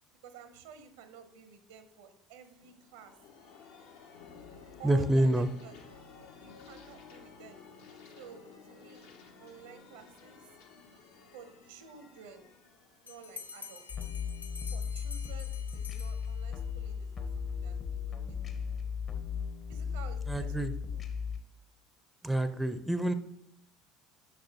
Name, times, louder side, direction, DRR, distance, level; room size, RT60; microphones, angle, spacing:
voice 1, 0.2-3.1 4.8-5.8 6.4-7.6 8.1-9.1 9.4-10.5 11.3-12.5 13.0-13.9 14.7-18.0 18.3-18.4 19.7-21.0, right 7 dB, 70° right, 10 dB, 0.6 m, -52 dB
sound 1, 2.6-14.1, left 5 dB, 65° left, 0.8 m, -54 dB
voice 2, 4.8-5.5 20.3-20.7 22.2-23.1, right 1 dB, 5° right, 11 dB, 0.5 m, -27 dB
Bell, 13.1-16.7, left 5 dB, 90° left, 0.4 m, -48 dB
sound 2, 13.9-21.4, left 6 dB, 40° left, 0.8 m, -36 dB
6.3 x 6.1 x 2.8 m, 0.70 s
figure-of-eight pair, 65°, 0 cm